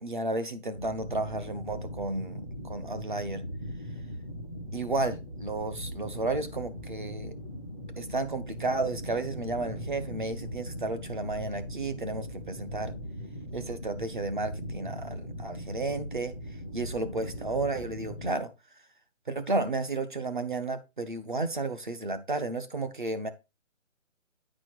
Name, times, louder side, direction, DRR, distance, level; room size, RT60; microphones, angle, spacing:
voice 1, 0.0-3.4 4.7-7.3 8.0-12.9 13.5-16.3 16.7-18.5 19.3-23.3, right 2 dB, 40° right, 0.9 m, -32 dB
sound 1, 0.7-18.3, equal, 20° right, 1.1 m, -40 dB
9.7 x 4.2 x 4.5 m
hypercardioid pair, 180°, 39 cm